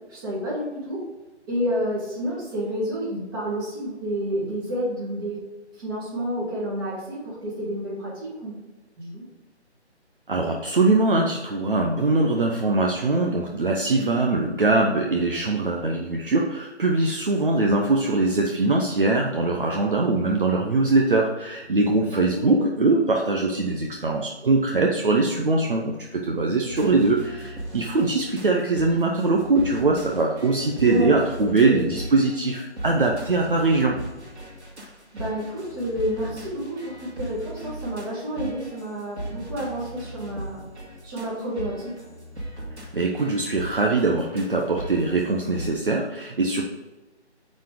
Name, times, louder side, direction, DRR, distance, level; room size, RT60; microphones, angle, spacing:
voice 1, 0.1-1.0 1.5-5.4 5.7-8.5 9.0-9.3 22.1-22.6 30.8-31.8 35.1-40.6 41.0-41.9, equal, 20° right, -7 dB, 2.5 m, -29 dB
voice 2, 10.3-34.0 42.9-46.6, right 3 dB, 50° right, 0 dB, 0.9 m, -22 dB
sound 1, 26.7-45.7, right 1 dB, 70° right, 2.4 m, -39 dB
9.2 x 4.3 x 5.0 m, 1.1 s
figure-of-eight pair, 160°, 34 cm